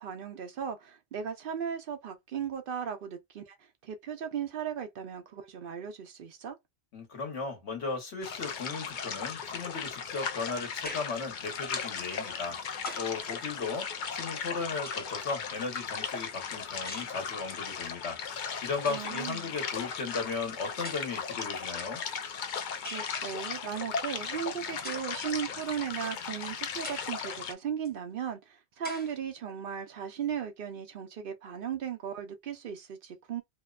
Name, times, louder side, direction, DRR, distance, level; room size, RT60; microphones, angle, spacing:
voice 1, 0.0-6.6 18.9-19.5 22.8-33.4, right 8 dB, 60° right, 0.7 m, -37 dB
voice 2, 6.9-22.0, left 4 dB, 90° left, 1.3 m, -36 dB
sound 1, 8.2-27.5, left 6 dB, 55° left, 0.6 m, -37 dB
sound 2, 10.8-11.3 12.3-13.2 14.3-15.3 16.8-17.2 18.3-18.4 18.7-19.1 20.1-20.2 20.8-21.3 22.8-23.2 24.8-25.2 25.8-25.9 26.8-27.2 27.8-27.9 28.8-29.2, left 1 dB, 10° left, 0.5 m, -44 dB
2.8 x 2.1 x 2.3 m
omnidirectional pair, 1.1 m